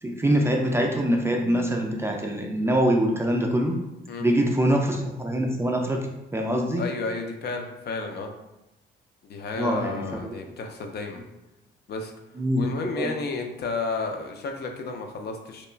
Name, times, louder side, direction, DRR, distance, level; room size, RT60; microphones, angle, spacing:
voice 1, 0.0-3.8 4.2-6.0 6.3-6.8 9.6-10.3 12.4-12.6 12.9-13.1, equal, 15° right, 1 dB, 0.3 m, -24 dB
voice 2, 6.8-8.3 9.3-11.2 11.9-12.1 12.5-15.7, left 3 dB, 55° left, 3 dB, 0.4 m, -32 dB
2.9 x 2.1 x 2.4 m, 0.93 s
cardioid pair, 90°, 20 cm